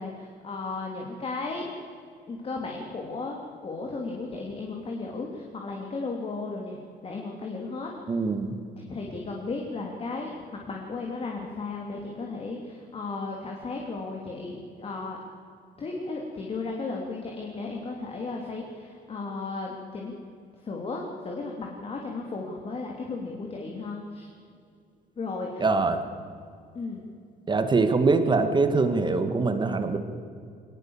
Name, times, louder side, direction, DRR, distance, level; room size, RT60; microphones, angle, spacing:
voice 1, 0.0-1.7 2.3-8.2 8.8-10.3 10.7-15.2 15.8-20.1 20.6-24.3 25.2-25.7 26.7-27.0, left 3 dB, 35° left, 0 dB, 3.2 m, -35 dB
voice 2, 8.1-8.5 25.6-26.0 27.5-30.0, right 3 dB, 25° right, 8 dB, 1.9 m, -23 dB
20.5 x 20.0 x 7.3 m, 2.3 s
cardioid pair, 110°, 17 cm